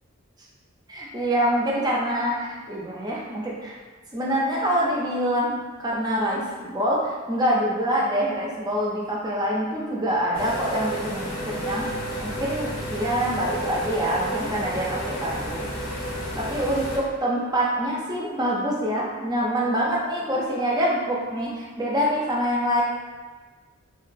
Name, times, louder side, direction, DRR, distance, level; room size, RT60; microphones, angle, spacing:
voice 1, 0.9-3.8 4.1-11.8 12.2-15.7 16.4-22.8, equal, 20° right, -4 dB, 0.4 m, -25 dB
sound 1, 10.3-17.0, equal, 80° left, 0.7 m, -31 dB
3.0 x 2.3 x 2.5 m, 1.3 s
head